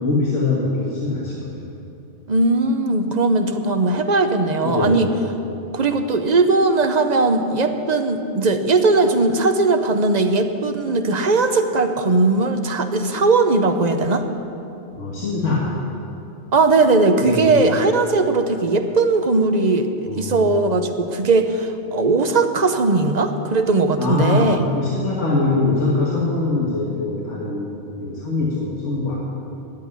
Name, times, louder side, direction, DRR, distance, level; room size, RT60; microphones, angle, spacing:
voice 1, 0.0-1.6 4.6-5.0 14.9-15.7 17.2-17.6 20.0-20.5 24.0-27.7 28.0-29.2, left 3 dB, 85° left, -5 dB, 2.1 m, -22 dB
voice 2, 2.3-5.1 5.7-14.3 16.5-24.6, right 3 dB, 40° right, 7 dB, 0.9 m, -18 dB
13.0 x 8.3 x 9.7 m, 2.8 s
omnidirectional pair, 1.2 m